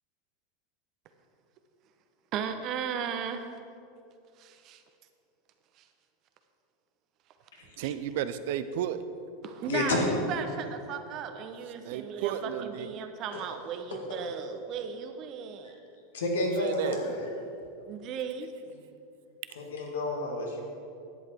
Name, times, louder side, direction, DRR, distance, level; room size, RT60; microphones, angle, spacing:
voice 1, 2.3-3.5 4.4-4.8 5.8-5.9 7.8-7.9 9.4-15.7 17.9-18.5, right 7 dB, 50° right, 7 dB, 1.0 m, -36 dB
voice 2, 7.8-9.0 11.8-12.9 16.6-17.0, right 10 dB, 70° right, 12 dB, 0.6 m, -33 dB
voice 3, 9.7-10.0 13.3-13.4 13.9-14.0 15.6-15.7 16.1-17.3 19.6-20.6, left 2 dB, 80° left, -1 dB, 2.1 m, -30 dB
10.5 x 8.1 x 4.6 m, 2.6 s
hypercardioid pair, 95°, 0 cm